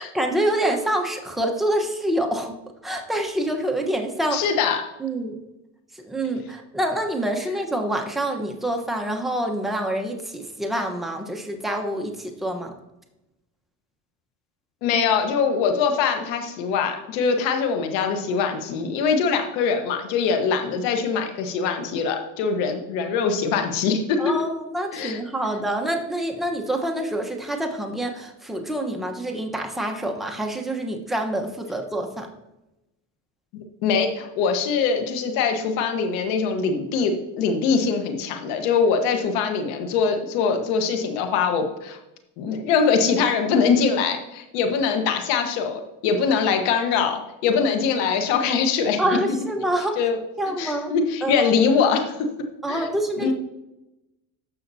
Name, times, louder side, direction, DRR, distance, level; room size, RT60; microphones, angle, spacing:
voice 1, 0.0-2.6 2.8-4.5 5.0-5.4 5.9-12.7 24.2-32.3 49.0-50.0 50.4-50.9 51.2-51.5 52.6-53.3, right 1 dB, ahead, 2 dB, 1.1 m, -26 dB
voice 2, 4.3-4.8 14.8-24.3 24.9-25.2 33.8-42.0 42.4-49.2 50.0-50.2 50.6-52.3 52.7-52.9 53.2-53.3, left 5 dB, 80° left, 5 dB, 1.4 m, -23 dB
14.0 x 5.8 x 2.8 m, 0.94 s
supercardioid pair, 100°, 39 cm